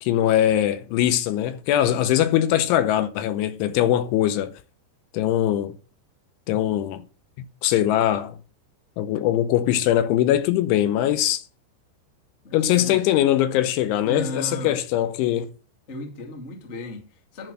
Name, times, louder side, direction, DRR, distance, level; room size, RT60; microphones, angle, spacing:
voice 1, 0.0-4.5 5.1-5.7 6.5-7.0 7.6-8.4 9.0-11.4 12.5-15.5, left 12 dB, 80° left, 3.1 m, -21 dB
voice 2, 12.4-13.0 14.0-14.8 15.9-17.5, equal, 45° left, 0.8 m, -36 dB
11.0 x 6.4 x 7.7 m
omnidirectional pair, 5.8 m